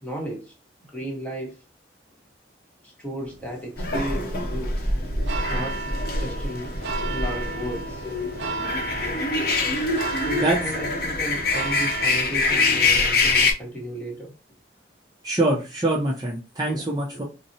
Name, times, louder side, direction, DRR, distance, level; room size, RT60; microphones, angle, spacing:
voice 1, 0.0-0.5 0.9-1.6 2.8-4.9 5.5-5.8 6.2-6.7 7.1-8.1 10.1-14.3 16.6-16.9 17.1-17.2, right 1 dB, 5° left, 0.9 m, -34 dB
sound 1, 3.2-12.2, right 3 dB, 75° right, 0.5 m, -34 dB
sound 2, 3.8-13.5, left 3 dB, 50° left, 0.7 m, -25 dB
voice 2, 15.2-17.2, right 2 dB, 20° right, 0.5 m, -24 dB
3.9 x 2.0 x 2.6 m
head